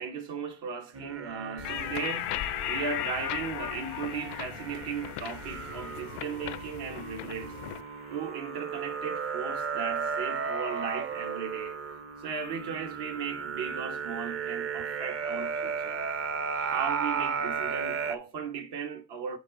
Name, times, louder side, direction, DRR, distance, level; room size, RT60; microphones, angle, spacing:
voice 1, 0.0-7.6 8.1-11.8 12.2-16.0 16.6-19.4, right 6 dB, 65° right, 1.2 m, -37 dB
sound 1, 0.9-18.2, right 6 dB, 30° right, 0.7 m, -35 dB
sound 2, 1.6-8.5, left 12 dB, 90° left, 0.9 m, -38 dB
sound 3, 1.6-7.8, left 14 dB, 65° left, 0.5 m, -42 dB
5.2 x 4.0 x 5.0 m
hypercardioid pair, 65°, 43 cm